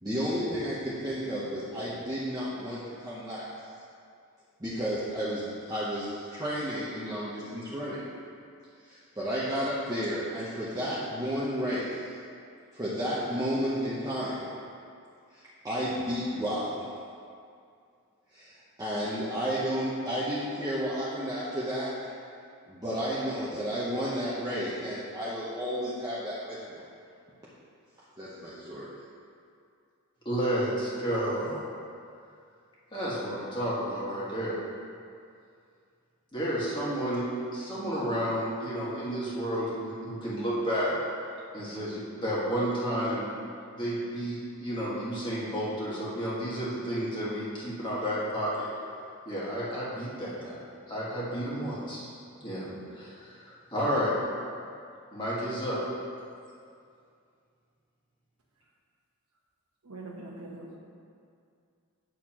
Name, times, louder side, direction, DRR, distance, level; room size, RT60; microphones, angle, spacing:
voice 1, 0.0-3.5 4.6-8.0 8.8-12.2 12.7-14.5 15.3-16.9 18.3-21.9 22.7-26.8 28.2-28.9, equal, 15° right, -9 dB, 0.8 m, -32 dB
voice 2, 30.3-31.7 32.9-34.6 36.3-37.2 37.5-41.0 41.5-43.3 43.7-48.7 49.3-52.1 52.4-54.1 55.1-55.8, equal, 20° left, -8 dB, 1.7 m, -31 dB
voice 3, 59.8-60.8, right 2 dB, 75° right, -2 dB, 1.1 m, -42 dB
8.9 x 6.5 x 3.0 m, 2.4 s
head